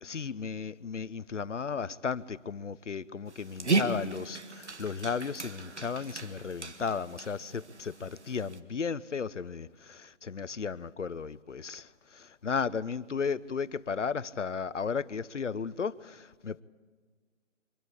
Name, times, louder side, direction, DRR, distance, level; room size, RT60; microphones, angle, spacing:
voice 1, 0.0-16.6, left 5 dB, 70° left, 0.8 m, -35 dB
Dog, 3.3-8.6, right 4 dB, 60° right, 1.7 m, -35 dB
24.0 x 13.0 x 9.8 m
figure-of-eight pair, 175°, 38 cm